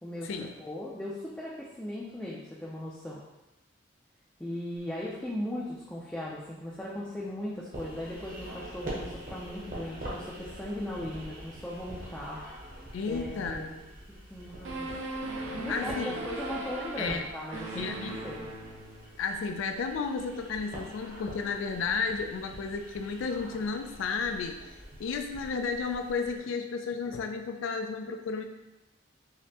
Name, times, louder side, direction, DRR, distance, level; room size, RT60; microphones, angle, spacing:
voice 1, 0.0-3.2 4.4-12.4 13.1-13.8 14.3-14.9 15.6-18.5, left 1 dB, 5° left, -6 dB, 0.3 m, -38 dB
sound 1, 7.7-26.4, right 1 dB, 45° right, 0.9 m, -45 dB
voice 2, 12.9-13.7 15.7-16.3 17.0-17.2 17.7-18.2 19.2-24.7 25.0-28.4, left 5 dB, 80° left, 6 dB, 0.3 m, -33 dB
sound 2, 14.6-19.3, right 2 dB, 80° right, 0.7 m, -38 dB
5.0 x 2.1 x 2.8 m, 0.99 s
head